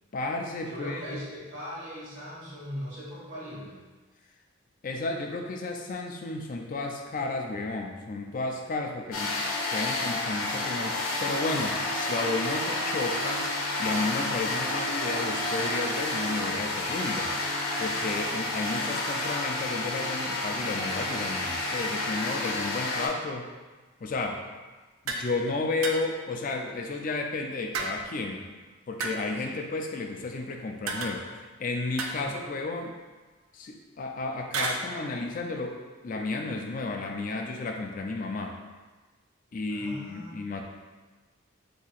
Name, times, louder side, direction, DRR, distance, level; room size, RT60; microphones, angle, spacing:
voice 1, 0.1-1.0 4.8-9.4 9.7-13.4 13.8-17.3 17.8-23.5 24.0-24.4 25.0-28.5 28.9-32.9 33.5-38.6 39.5-40.6, left 3 dB, 40° left, 2 dB, 0.3 m, -32 dB
voice 2, 0.7-3.8 29.4-29.6 32.2-32.3 39.7-40.3, equal, 65° right, -7 dB, 1.3 m, -39 dB
sound 1, 9.1-23.1, left 2 dB, 85° left, 0.7 m, -30 dB
sound 2, 25.1-25.3 25.8-26.3 27.7-28.3 29.0-29.4 30.9-31.5 32.0-32.7 34.5-34.8, right 3 dB, 80° right, 0.4 m, -33 dB
4.1 x 2.8 x 2.4 m, 1.3 s
head